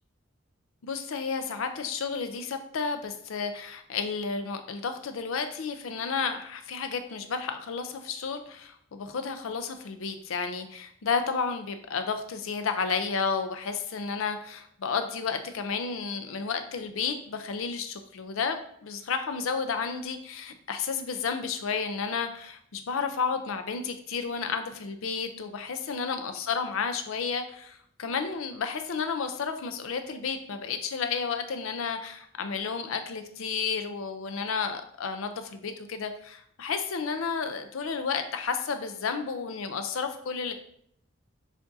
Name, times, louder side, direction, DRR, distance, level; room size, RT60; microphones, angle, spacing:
voice 1, 0.8-40.5, left 5 dB, 75° left, 8 dB, 0.5 m, -32 dB
7.0 x 2.6 x 2.6 m, 0.67 s
head